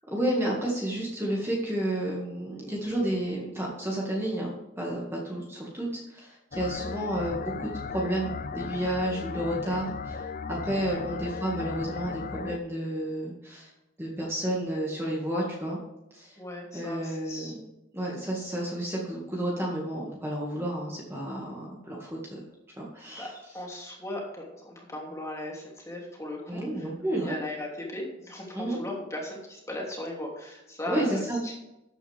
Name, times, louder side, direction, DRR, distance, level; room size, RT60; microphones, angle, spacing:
voice 1, 0.1-13.7 14.0-15.8 16.1-16.4 16.7-17.6 17.9-22.4 22.8-23.3 26.5-27.3 28.5-28.8 30.9-31.4, right 1 dB, 15° right, -3 dB, 2.0 m, -31 dB
sound 1, 6.5-12.6, left 5 dB, 45° left, 0.6 m, -36 dB
voice 2, 16.4-17.5 23.2-26.9 27.2-31.5, left 1 dB, 15° left, -2 dB, 2.8 m, -38 dB
13.0 x 8.7 x 3.5 m, 0.93 s
head